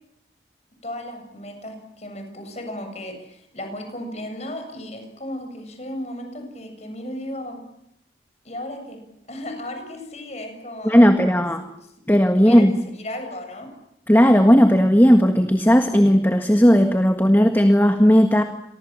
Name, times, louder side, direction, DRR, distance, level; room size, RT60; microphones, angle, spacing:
voice 1, 0.8-7.6 8.4-9.0 9.3-11.1 11.8-11.9 12.3-12.7 13.0-13.7, left 1 dB, 35° left, 5 dB, 7.4 m, -35 dB
voice 2, 10.8-11.6 12.1-12.7 14.1-18.4, equal, 10° left, 6 dB, 1.6 m, -15 dB
29.5 x 24.5 x 7.5 m, 0.80 s
head